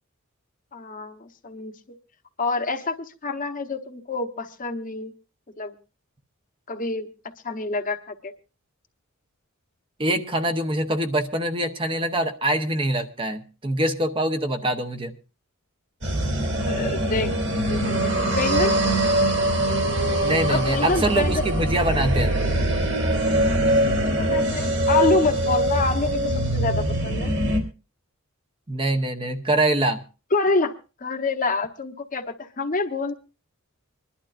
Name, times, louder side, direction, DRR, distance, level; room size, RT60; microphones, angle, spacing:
voice 1, 0.7-1.7 2.4-5.1 5.6-5.7 6.7-7.1 7.4-8.3 16.7-17.3 17.7-18.7 20.5-21.5 23.5-27.3 30.3-30.7 31.0-33.1, left 3 dB, 40° left, 6 dB, 0.9 m, -27 dB
voice 2, 10.0-15.1 20.2-22.4 28.7-30.0, right 1 dB, 25° right, 7 dB, 0.8 m, -24 dB
sound 1, 16.0-27.6, right 1 dB, 55° right, 3.1 m, -23 dB
25.5 x 11.5 x 2.5 m, 0.32 s
head